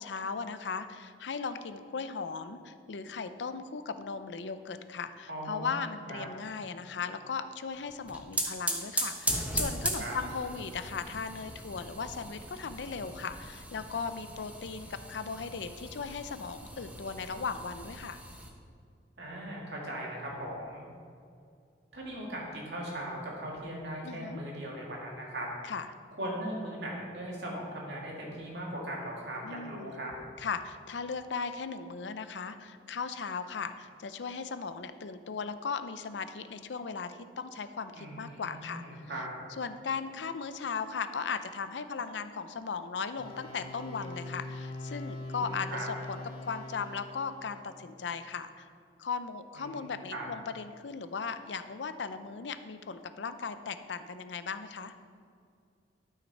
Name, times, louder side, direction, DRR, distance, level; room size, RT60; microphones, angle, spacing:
voice 1, 0.0-18.2 24.0-24.4 25.6-25.9 29.4-29.9 30.4-39.0 39.6-48.7 49.0-54.9, left 5 dB, 85° left, 11 dB, 0.5 m, -37 dB
voice 2, 5.3-5.7 6.1-6.2 10.0-10.1 19.2-20.9 21.9-25.5 26.2-30.1 37.9-39.3 45.4-45.9 49.6-50.3, right 1 dB, 70° right, -2 dB, 2.2 m, -39 dB
sound 1, 7.9-18.5, right 1 dB, 10° right, 0.8 m, -38 dB
sound 2, 43.2-47.6, left 2 dB, 25° left, 1.6 m, -42 dB
12.5 x 5.8 x 4.2 m, 2.4 s
head